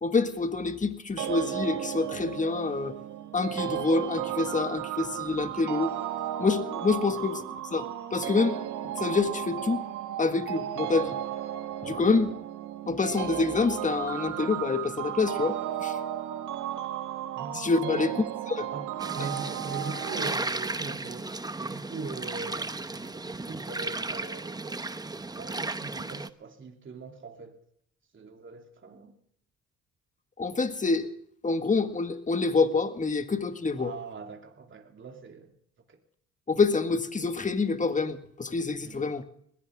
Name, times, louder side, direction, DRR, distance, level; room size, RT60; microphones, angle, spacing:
voice 1, 0.0-3.0 3.3-6.0 6.4-7.4 7.7-7.9 8.1-8.6 9.0-9.8 10.2-11.1 11.8-12.3 12.9-16.0 17.5-18.1 18.5-18.7 30.4-31.1 31.4-33.9 36.5-39.2, left 4 dB, 25° left, 9 dB, 1.7 m, -27 dB
sound 1, 1.2-20.4, right 12 dB, 80° right, 1.6 m, -34 dB
voice 2, 17.3-18.2 18.7-18.9 19.1-25.0 25.4-27.6 28.1-29.1 33.8-35.5 35.9-36.0 38.8-39.1, right 4 dB, 40° right, 3 dB, 3.1 m, -41 dB
sound 2, 19.0-26.3, right 3 dB, 15° right, 0.8 m, -35 dB
20.5 x 17.0 x 3.6 m, 0.67 s
cardioid pair, 90°, 30 cm